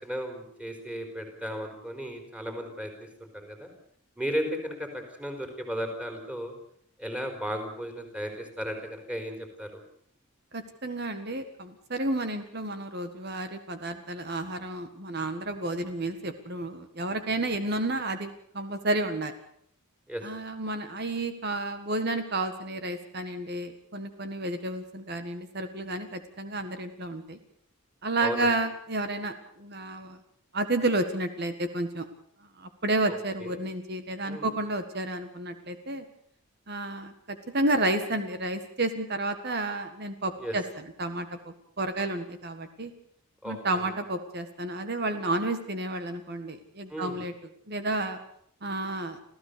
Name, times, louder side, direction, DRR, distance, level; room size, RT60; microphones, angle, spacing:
voice 1, 0.0-3.7 4.2-6.5 7.0-9.8 20.1-20.2 28.2-28.6 33.4-33.6 34.2-34.5 40.4-40.5 43.4-43.9 46.9-47.2, equal, 5° right, 5 dB, 4.2 m, -35 dB
voice 2, 10.5-19.3 20.2-27.4 28.0-30.2 30.5-32.1 32.6-36.0 36.7-42.9 43.4-47.3 47.7-48.2 48.6-49.2, right 2 dB, 50° right, 8 dB, 1.7 m, -31 dB
26.5 x 15.5 x 6.8 m, 0.65 s
head